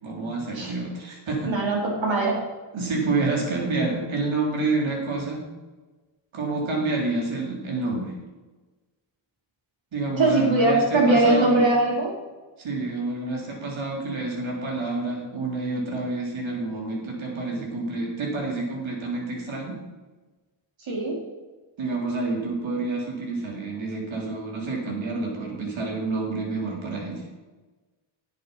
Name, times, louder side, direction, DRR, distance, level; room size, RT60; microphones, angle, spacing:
voice 1, 0.0-1.5 2.7-5.4 6.3-8.1 9.9-11.6 12.6-19.8 21.8-27.2, right 3 dB, 90° right, -1 dB, 3.4 m, -28 dB
voice 2, 1.4-2.4 10.2-12.1 20.9-21.2, right 2 dB, 75° right, -2 dB, 4.0 m, -21 dB
10.5 x 7.8 x 5.7 m, 1.2 s
cardioid pair, 80°, 46 cm